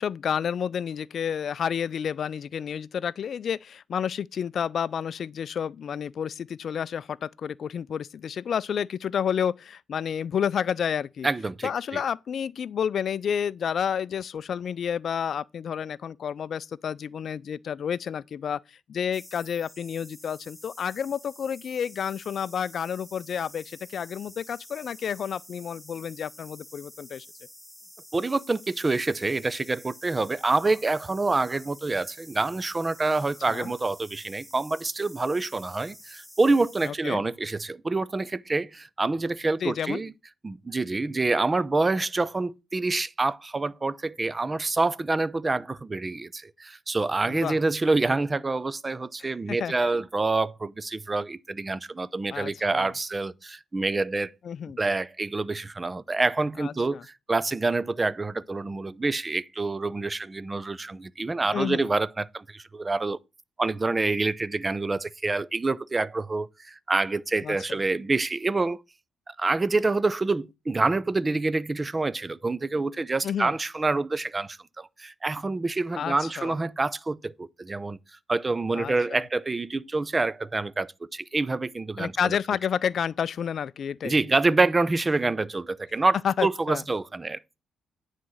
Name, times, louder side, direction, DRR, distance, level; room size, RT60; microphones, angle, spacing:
voice 1, 0.0-11.3 11.6-27.3 33.5-33.7 36.8-37.2 39.6-40.0 47.2-47.6 49.2-49.7 52.3-52.9 54.4-54.8 56.6-57.0 61.5-61.9 67.4-67.6 73.2-73.5 75.9-76.5 78.7-79.2 82.0-84.2 86.2-86.8, left 8 dB, 60° left, 0.4 m, -30 dB
voice 2, 11.2-12.0 28.1-40.1 40.4-54.3 54.8-63.2 63.6-68.8 69.3-78.0 78.3-82.4 84.0-87.4, right 3 dB, 25° right, 0.5 m, -27 dB
sound 1, 19.1-36.9, equal, ahead, 1.2 m, -49 dB
9.5 x 4.1 x 6.2 m
supercardioid pair, 70°, 0 cm